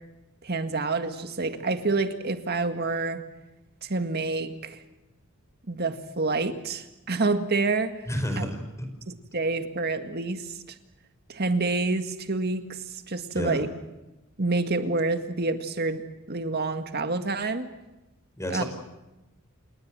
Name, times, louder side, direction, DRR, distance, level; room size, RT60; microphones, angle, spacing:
voice 1, 0.4-3.2 3.8-4.8 5.7-7.9 8.4-8.5 9.1-10.6 11.3-12.8 13.1-13.7 14.4-17.7 18.5-18.6, right 3 dB, 50° right, 8 dB, 1.9 m, -28 dB
voice 2, 8.1-8.6 13.3-13.6 18.4-18.6, equal, 15° left, 6 dB, 4.8 m, -29 dB
29.0 x 19.0 x 7.8 m, 0.99 s
head